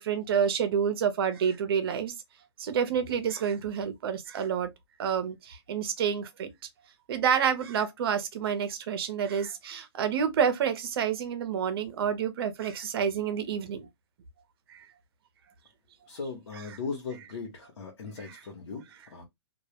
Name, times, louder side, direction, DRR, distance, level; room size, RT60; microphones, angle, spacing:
voice 1, 0.0-2.1 2.6-4.7 5.0-6.5 7.1-13.9 14.7-14.8 16.5-16.6 18.2-18.4, right 7 dB, 55° right, 0.6 m, -28 dB
voice 2, 16.1-18.8 19.1-19.2, left 4 dB, 85° left, 0.9 m, -38 dB
2.3 x 2.0 x 2.8 m
hypercardioid pair, 155°, 15 cm